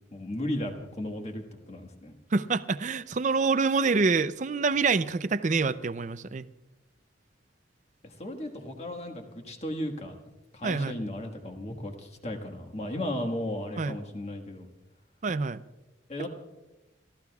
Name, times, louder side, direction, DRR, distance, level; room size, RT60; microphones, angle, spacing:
voice 1, 0.1-2.2 8.0-10.2 10.5-14.7 16.1-16.3, left 1 dB, 35° left, 4 dB, 1.5 m, -35 dB
voice 2, 2.3-6.4 10.6-11.0 13.8-14.0 15.2-15.6, right 4 dB, 40° right, 13 dB, 0.5 m, -26 dB
29.0 x 14.5 x 2.4 m, 1.0 s
head